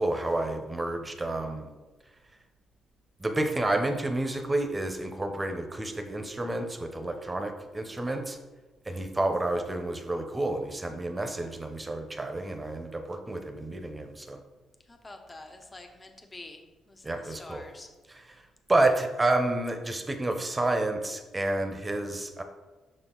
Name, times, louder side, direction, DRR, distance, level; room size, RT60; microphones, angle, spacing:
voice 1, 0.0-1.7 3.2-8.4 8.9-14.4 17.0-17.6 18.1-18.3 18.7-22.4, right 2 dB, 20° right, 6 dB, 0.7 m, -29 dB
voice 2, 14.9-17.9, left 2 dB, 20° left, 4 dB, 0.7 m, -47 dB
6.2 x 4.5 x 3.8 m, 1.2 s
cardioid pair, 90°, 0 cm